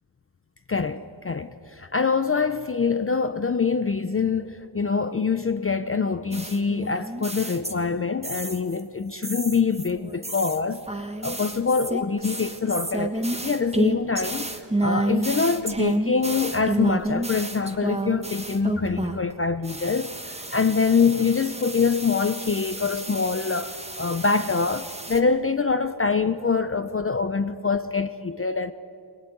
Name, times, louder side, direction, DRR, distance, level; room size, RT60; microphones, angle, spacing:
voice 1, 0.7-10.8 11.2-14.5 14.8-28.7, left 5 dB, 30° left, 0.5 m, -25 dB
sound 1, 6.3-8.8 9.2-19.3 19.6-25.2, right 2 dB, 15° right, 1.3 m, -30 dB
22.5 x 19.5 x 9.5 m
wide cardioid pair, 155°, 49 cm